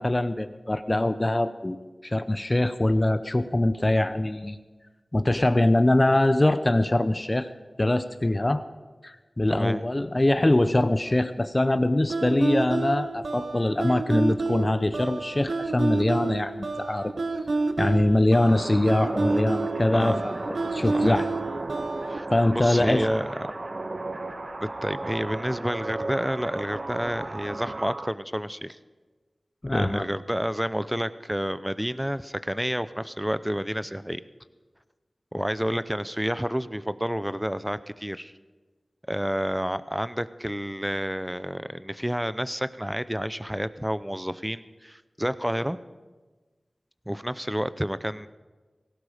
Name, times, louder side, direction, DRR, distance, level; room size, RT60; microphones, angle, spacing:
voice 1, 0.0-4.6 5.1-7.5 7.8-8.6 9.0-17.1 17.8-21.3 22.3-23.2 29.6-30.1, left 1 dB, 30° left, 11 dB, 0.7 m, -23 dB
voice 2, 9.5-9.9 19.9-20.3 20.9-21.3 22.1-22.3 22.5-23.5 24.6-28.8 29.7-34.2 35.3-38.3 39.1-45.8 47.1-48.3, equal, 5° right, 15 dB, 0.6 m, -29 dB
sound 1, 12.1-22.2, right 3 dB, 85° right, 0.9 m, -29 dB
sound 2, 18.3-28.1, right 2 dB, 50° right, 0.7 m, -35 dB
17.5 x 16.0 x 5.0 m, 1.3 s
cardioid pair, 45°, 0 cm